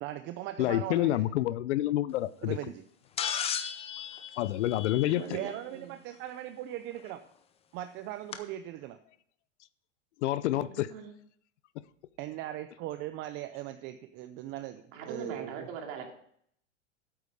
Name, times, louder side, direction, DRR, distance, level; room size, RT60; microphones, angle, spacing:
voice 1, 0.0-1.3 2.4-2.8 5.3-7.2 7.7-9.0 12.2-15.7, right 13 dB, 30° right, 10 dB, 0.5 m, -39 dB
voice 2, 0.6-2.6 4.4-5.2 10.2-10.9, left 14 dB, 65° left, 18 dB, 0.6 m, -28 dB
sound 1, 3.2-5.5 7.1-7.2 8.3-8.4, left 8 dB, 15° left, 0.6 m, -35 dB
voice 3, 5.0-5.9 10.5-11.1 14.9-16.1, right 5 dB, 50° right, 2 dB, 2.7 m, -41 dB
8.7 x 8.1 x 5.0 m, 0.66 s
supercardioid pair, 135°, 37 cm